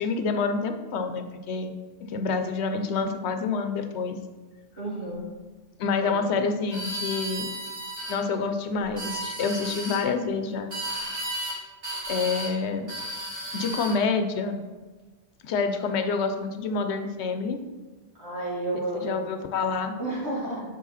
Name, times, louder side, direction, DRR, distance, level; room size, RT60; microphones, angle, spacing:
voice 1, 0.0-1.7 2.0-4.2 5.8-7.5 8.1-10.7 12.1-12.9 13.5-14.6 15.4-17.6 19.0-19.9, left 4 dB, 85° left, 8 dB, 0.9 m, -27 dB
voice 2, 4.8-5.3 6.0-6.2 18.1-19.2 20.0-20.6, right 2 dB, 90° right, -6 dB, 2.5 m, -31 dB
sound 1, 6.7-8.2 8.8-10.0 10.7-11.6 11.8-12.5 12.9-14.0, right 1 dB, 65° right, 1.9 m, -33 dB
7.3 x 4.4 x 4.1 m, 1.3 s
omnidirectional pair, 1.1 m